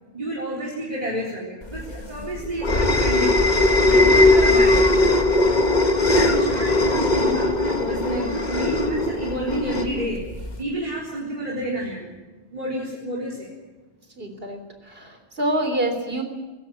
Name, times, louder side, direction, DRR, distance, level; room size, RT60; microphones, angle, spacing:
voice 1, 0.1-3.3 3.8-4.9 6.2-10.2 10.6-12.1 12.5-13.5, right 1 dB, 35° right, -4 dB, 4.4 m, -29 dB
sound 1, 1.8-10.6, left 2 dB, 40° left, 1.9 m, -19 dB
voice 2, 14.2-14.6 14.9-16.2, right 1 dB, 60° right, 6 dB, 3.9 m, -26 dB
19.5 x 17.5 x 9.2 m, 1.2 s
omnidirectional pair, 1.1 m